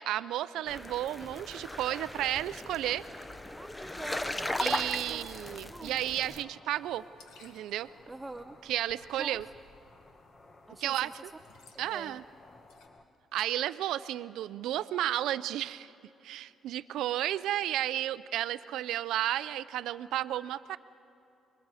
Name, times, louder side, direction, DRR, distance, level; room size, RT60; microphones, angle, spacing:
voice 1, 0.0-3.0 4.6-7.0 7.4-7.9 8.7-9.5 10.8-11.3 11.8-12.2 13.3-15.9 16.2-20.8, right 13 dB, 85° right, 14 dB, 0.4 m, -32 dB
sound 1, 0.7-6.4, left 1 dB, 15° left, 0.8 m, -37 dB
sound 2, 1.1-13.0, left 3 dB, 35° left, 1.3 m, -58 dB
voice 2, 3.6-4.5 5.1-5.3 5.7-6.0 8.1-8.6 9.2-9.4 10.7-11.2 11.9-12.2, right 2 dB, 15° right, 8 dB, 0.6 m, -45 dB
sound 3, 6.7-12.9, left 4 dB, 90° left, 2.0 m, -60 dB
27.5 x 22.0 x 4.9 m, 2.8 s
cardioid pair, 90°, 0 cm